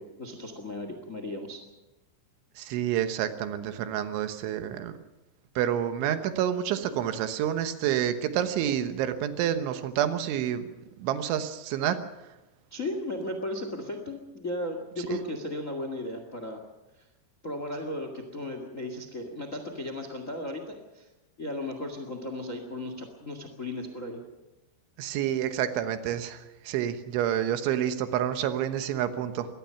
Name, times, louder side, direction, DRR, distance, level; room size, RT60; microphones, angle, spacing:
voice 1, 0.0-1.6 12.7-16.6 17.4-21.1 21.4-24.2, left 1 dB, 65° left, 6 dB, 0.7 m, -35 dB
voice 2, 2.6-5.0 5.6-10.7 11.0-12.0 15.1-15.2 25.0-26.4 26.7-29.5, right 10 dB, 85° right, 9 dB, 3.6 m, -28 dB
23.5 x 19.0 x 5.8 m, 1.0 s
omnidirectional pair, 5.3 m